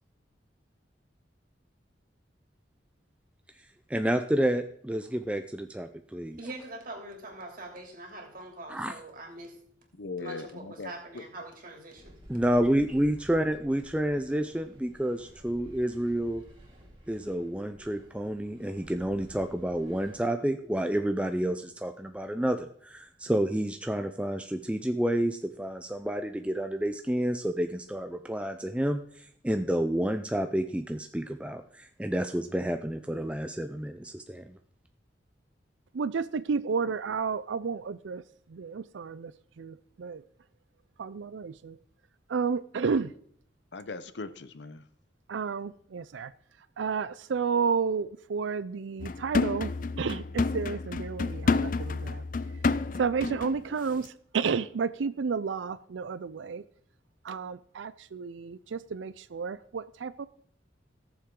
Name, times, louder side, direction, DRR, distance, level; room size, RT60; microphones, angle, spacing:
voice 1, 3.9-6.4 8.7-8.9 12.3-16.4 17.1-34.6, right 1 dB, 5° right, 7 dB, 0.4 m, -29 dB
voice 2, 6.4-9.5 10.2-12.2, right 1 dB, 50° right, 1 dB, 3.1 m, -43 dB
voice 3, 9.9-11.2 43.7-44.9, left 3 dB, 70° left, 13 dB, 0.8 m, -40 dB
sound 1, 12.0-20.2, equal, 25° right, 3.3 m, -53 dB
voice 4, 35.9-38.2 38.5-40.2 41.0-41.8 42.3-43.1 45.3-46.3 46.8-49.7 50.0-52.2 53.0-56.6 57.2-60.3, right 5 dB, 85° right, 15 dB, 0.5 m, -31 dB
sound 2, 49.0-53.6 53.9-54.1, left 3 dB, 45° left, 0.5 m, -29 dB
18.0 x 7.2 x 3.8 m, 0.62 s
head